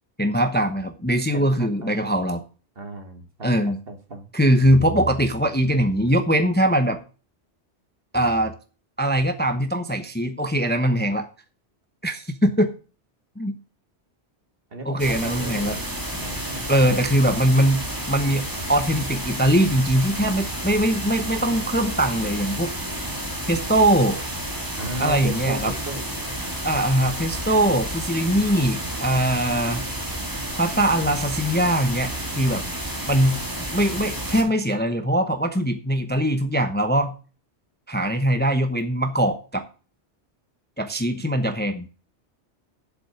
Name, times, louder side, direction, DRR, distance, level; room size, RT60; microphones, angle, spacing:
voice 1, 0.2-2.4 3.4-3.8 4.3-7.0 8.1-8.5 9.0-11.3 12.0-12.7 13.4-13.5 14.8-15.8 16.7-22.7 23.5-24.2 25.0-25.7 26.6-29.8 30.6-32.7 33.1-33.4 33.7-37.1 37.9-39.6 40.8-41.9, right 1 dB, 10° left, 8 dB, 0.9 m, -21 dB
voice 2, 1.3-2.2 2.8-4.3 14.7-15.8 16.2-16.9 24.8-26.0, right 2 dB, 55° right, 6 dB, 2.0 m, -35 dB
sound 1, 15.0-34.4, right 1 dB, 15° right, 2.2 m, -31 dB
8.0 x 7.5 x 7.0 m, 0.36 s
omnidirectional pair, 1.2 m